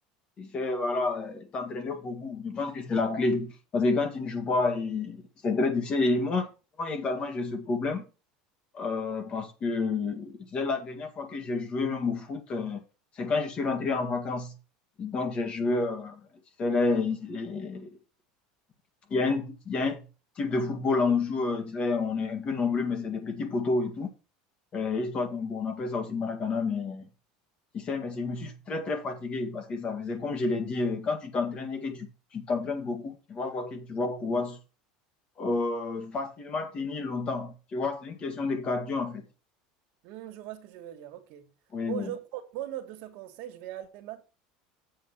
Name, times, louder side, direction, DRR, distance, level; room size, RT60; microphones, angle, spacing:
voice 1, 0.4-6.5 6.8-8.0 8.7-12.8 13.2-14.6 15.0-16.3 16.6-18.0 19.1-20.1 20.4-24.1 24.7-27.1 27.7-34.6 35.4-39.2 41.7-42.1, left 3 dB, 35° left, 1.9 m, -30 dB
voice 2, 40.0-41.5 41.8-44.2, right 12 dB, 65° right, 1.8 m, -39 dB
7.7 x 5.5 x 5.9 m
supercardioid pair, 130°, 3 cm